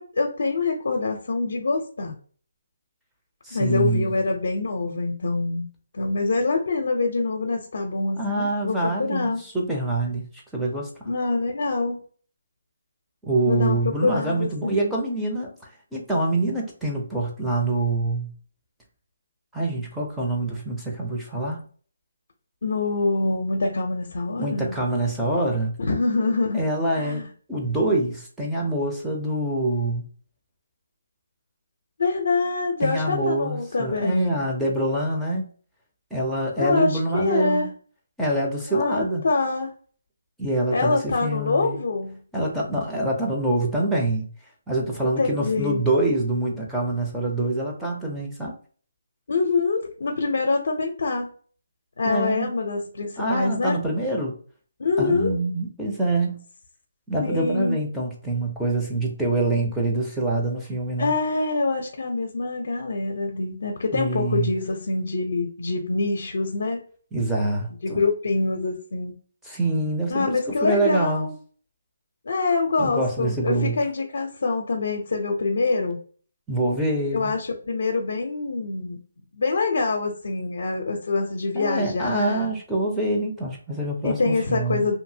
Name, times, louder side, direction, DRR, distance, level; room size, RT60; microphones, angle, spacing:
voice 1, 0.0-2.1 3.5-5.7 5.9-9.4 11.1-12.0 13.4-14.9 22.6-24.8 25.9-26.6 27.0-27.3 32.0-34.4 36.6-37.7 38.7-39.7 40.7-42.2 45.0-45.8 49.3-51.3 52.0-53.8 54.8-55.3 57.2-57.8 61.0-66.8 67.8-69.1 70.1-71.3 72.3-76.0 77.1-79.0 79.3-82.5 84.0-84.9, left 3 dB, 65° left, 2 dB, 0.5 m, -25 dB
voice 2, 3.4-4.1 8.2-10.9 13.2-15.5 15.9-18.3 19.5-21.6 24.4-25.8 26.5-27.2 27.5-30.0 32.8-35.5 36.1-37.7 38.2-39.3 40.4-41.8 42.3-44.3 44.7-48.5 52.0-52.5 53.2-54.3 55.0-56.4 57.1-61.1 63.9-64.5 67.1-68.0 69.4-71.3 72.8-73.8 76.5-77.3 81.5-84.8, right 2 dB, ahead, -3 dB, 0.5 m, -25 dB
2.7 x 2.6 x 2.7 m, 0.44 s
hypercardioid pair, 170°, 0 cm